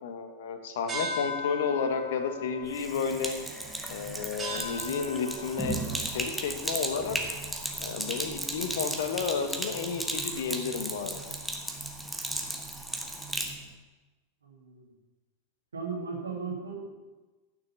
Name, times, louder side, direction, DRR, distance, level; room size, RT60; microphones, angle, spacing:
voice 1, 0.0-3.4 3.9-5.8 6.1-7.2 7.8-11.2, left 6 dB, 55° left, 8 dB, 1.3 m, -32 dB
sound 1, 0.9-7.7, left 1 dB, 20° right, 3.0 m, -40 dB
Sink (filling or washing), 2.6-13.6, right 1 dB, 5° right, 1.4 m, -35 dB
voice 2, 14.4-14.9 15.7-16.9, right 4 dB, 75° right, 1 dB, 2.3 m, -36 dB
10.5 x 6.4 x 7.2 m, 1.2 s
figure-of-eight pair, 90°, 0 cm